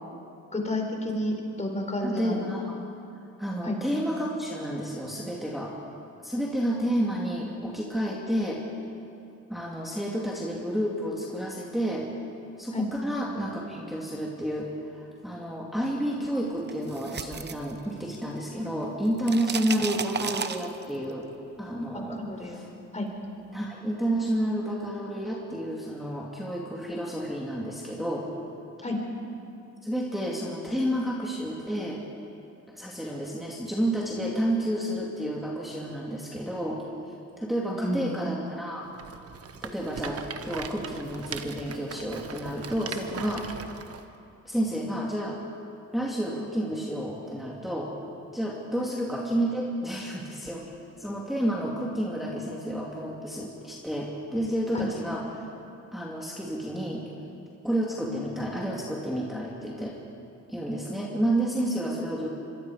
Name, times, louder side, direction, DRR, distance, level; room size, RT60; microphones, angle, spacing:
voice 1, 0.5-2.4 3.6-3.8 12.7-12.9 21.9-22.6 22.9-23.1 28.8-29.0 37.7-38.1 54.7-54.9, left 1 dB, 25° left, 2 dB, 4.3 m, -30 dB
voice 2, 2.0-2.8 3.4-5.8 6.2-8.6 9.5-12.1 12.6-21.3 21.6-22.7 23.5-28.3 29.8-32.0 32.7-36.8 37.4-38.9 39.6-43.8 44.4-45.4 45.9-47.9 48.3-50.7 51.0-55.4 55.9-57.1 57.6-60.0 60.5-62.3, right 1 dB, ahead, -4 dB, 2.8 m, -30 dB
sound 1, 16.7-18.4 18.7-21.1, right 6 dB, 35° right, 1.0 m, -34 dB
Rattle, 38.9-44.0, right 7 dB, 50° right, 1.4 m, -39 dB
26.0 x 23.0 x 5.1 m, 2.7 s
cardioid pair, 90°, 30 cm